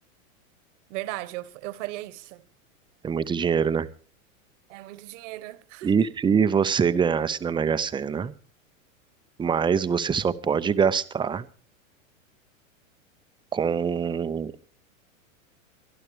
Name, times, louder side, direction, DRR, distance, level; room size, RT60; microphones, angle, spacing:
voice 1, 0.9-2.4 4.7-5.9, right 17 dB, 55° right, 1.4 m, -36 dB
voice 2, 3.0-3.9 5.8-8.3 9.4-11.4 13.5-14.5, right 6 dB, 10° right, 0.7 m, -24 dB
23.5 x 12.0 x 3.3 m
hypercardioid pair, 115°, 42 cm